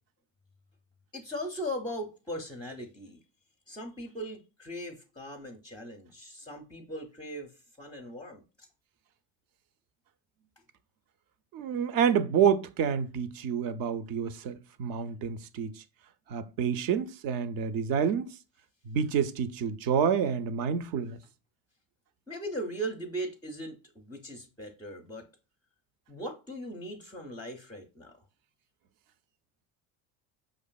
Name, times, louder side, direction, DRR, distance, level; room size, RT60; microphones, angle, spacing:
voice 1, 1.1-3.2 3.7-7.5 7.8-8.4 22.3-25.3 26.1-28.2, equal, 10° left, 0.5 m, -39 dB
voice 2, 11.5-15.8 16.3-18.3 18.9-21.2, right 7 dB, 50° right, 0.5 m, -28 dB
5.1 x 2.4 x 2.3 m
hypercardioid pair, 75°, 44 cm